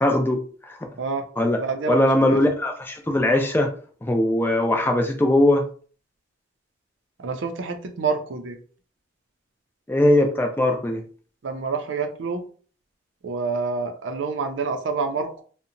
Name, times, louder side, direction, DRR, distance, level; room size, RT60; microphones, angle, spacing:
voice 1, 0.0-0.8 1.4-1.6 1.9-3.7 4.0-5.6 9.9-11.0, left 1 dB, 10° left, 4 dB, 0.3 m, -20 dB
voice 2, 1.6-2.4 7.2-8.6 11.4-12.4 13.2-15.4, right 4 dB, 80° right, 6 dB, 0.5 m, -27 dB
2.7 x 2.1 x 2.5 m, 0.42 s
head